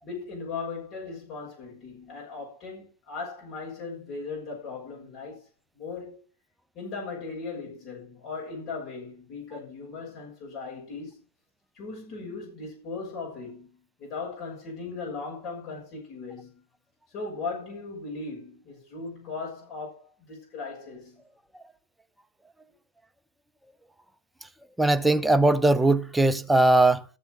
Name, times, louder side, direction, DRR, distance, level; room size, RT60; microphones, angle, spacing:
voice 1, 0.0-5.4 5.8-6.2 6.7-11.2 11.7-16.6 17.1-21.2, left 4 dB, 35° left, 6.6 m, -38 dB
voice 2, 24.8-27.0, right 2 dB, 5° right, 0.8 m, -20 dB
14.0 x 6.8 x 6.4 m
figure-of-eight pair, 90°, 0 cm